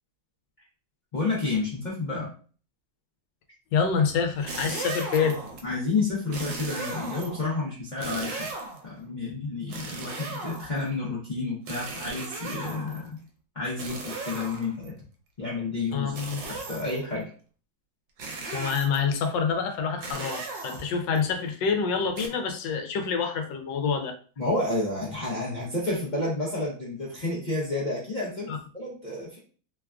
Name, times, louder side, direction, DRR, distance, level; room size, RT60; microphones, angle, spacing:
voice 1, 1.1-2.3 5.6-8.5 8.8-13.1 13.5-14.9 15.4-16.1 16.5-17.3 24.4-29.4, left 3 dB, 60° left, -7 dB, 0.4 m, -30 dB
voice 2, 3.7-5.4 15.9-16.4 18.5-24.1 28.5-28.6, left 6 dB, 85° left, 5 dB, 1.3 m, -27 dB
sound 1, 4.3-5.7 6.3-7.5 8.0-8.9 9.7-10.9 11.7-13.1 13.8-14.9 16.1-17.1 18.2-19.1 20.0-21.2 22.2-22.3, right 3 dB, 85° right, 1.3 m, -37 dB
3.2 x 2.3 x 2.4 m, 0.40 s
omnidirectional pair, 1.9 m